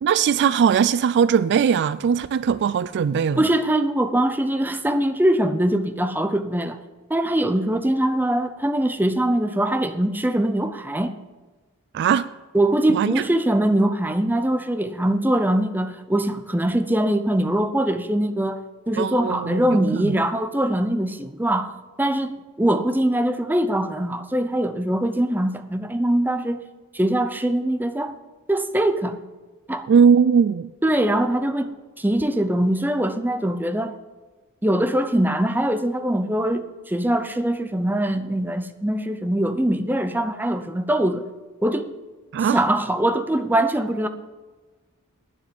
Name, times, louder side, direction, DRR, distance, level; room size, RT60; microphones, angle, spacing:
voice 1, 0.0-3.4 11.9-12.3 12.9-13.1 19.0-20.1 29.9-30.7 42.3-42.6, right 7 dB, 50° right, 0.3 m, -19 dB
voice 2, 3.4-6.8 7.1-11.1 12.5-18.6 18.9-21.7 22.0-26.6 26.9-28.1 28.5-29.2 29.7-29.9 30.8-34.0 34.6-41.3 41.6-41.9 42.5-44.1, right 1 dB, 10° right, 0.7 m, -22 dB
9.5 x 7.4 x 7.5 m
head